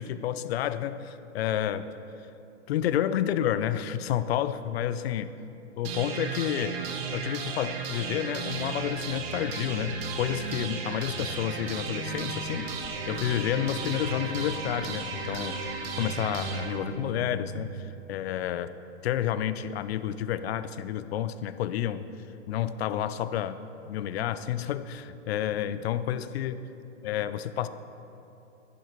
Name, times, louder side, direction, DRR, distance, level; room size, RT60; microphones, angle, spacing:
voice 1, 0.0-1.9 2.7-5.3 5.8-6.8 7.1-12.7 13.1-15.6 16.0-18.8 19.0-22.0 22.5-23.6 23.9-26.6 27.0-27.7, left 10 dB, 60° left, 13 dB, 0.5 m, -30 dB
sound 1, 5.8-17.8, right 4 dB, 55° right, 1.3 m, -35 dB
sound 2, 12.0-17.1, left 3 dB, 15° left, 1.4 m, -44 dB
11.5 x 11.0 x 3.1 m, 2.9 s
hypercardioid pair, 135°, 36 cm